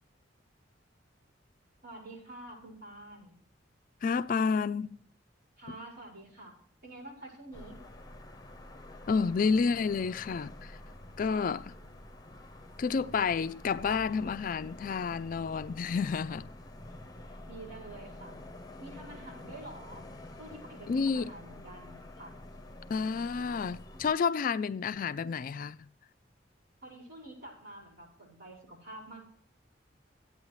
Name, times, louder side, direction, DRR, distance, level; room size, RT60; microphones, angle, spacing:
voice 1, 1.8-3.3 5.6-6.6 6.8-7.9 17.0-18.4 18.8-20.0 20.4-22.3 26.8-29.2, right 2 dB, 55° right, 5.5 m, -48 dB
voice 2, 4.0-5.0 9.1-10.8 11.2-11.8 12.8-16.5 20.9-21.3 22.9-25.9, left 5 dB, 45° left, 0.3 m, -30 dB
sound 1, 7.5-24.1, left 1 dB, 20° left, 0.9 m, -48 dB
14.0 x 8.8 x 3.1 m
head